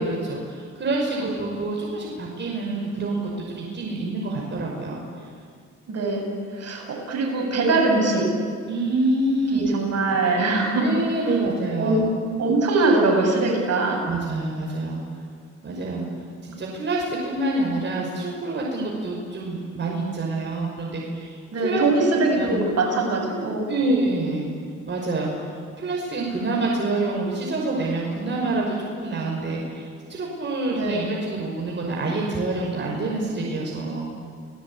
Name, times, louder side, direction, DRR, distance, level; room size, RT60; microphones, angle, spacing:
voice 1, 0.0-5.0 8.7-9.7 10.8-12.1 14.0-15.0 15.6-16.0 16.4-21.4 21.6-21.8 22.3-22.6 23.7-24.5 24.8-25.3 25.8-34.1, right 2 dB, 35° right, -2 dB, 5.6 m, -27 dB
voice 2, 5.9-6.3 6.5-8.3 9.5-10.9 11.2-11.4 11.8-12.0 12.4-14.1 21.5-23.7 30.7-31.1, right 2 dB, 55° right, 1 dB, 7.4 m, -22 dB
29.5 x 19.0 x 8.8 m, 2.1 s
cardioid pair, 90°, 30 cm